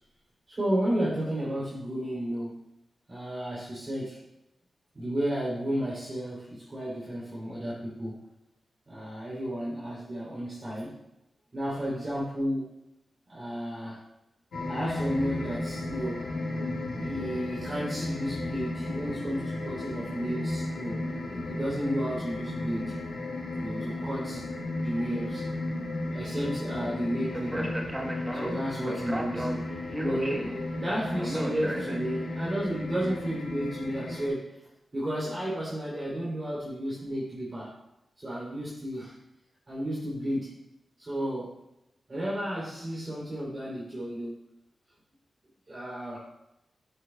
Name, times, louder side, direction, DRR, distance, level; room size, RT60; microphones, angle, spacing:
voice 1, 0.5-2.6 3.1-4.2 4.9-8.1 8.9-10.9 11.5-12.7 13.3-14.0 14.7-16.2 16.9-21.1 21.3-22.9 23.6-24.5 24.7-25.5 26.1-27.8 28.3-29.5 30.0-34.6 34.9-37.7 38.2-39.2 39.7-40.5 41.0-41.5 42.1-44.4 45.7-46.3, equal, 35° right, -7 dB, 3.0 m, -32 dB
sound 1, 14.5-34.3, left 2 dB, 90° left, 1.5 m, -34 dB
Speech, 27.3-32.4, right 1 dB, 15° right, 1.1 m, -34 dB
10.5 x 7.7 x 2.2 m, 0.89 s
cardioid pair, 75°, 0 cm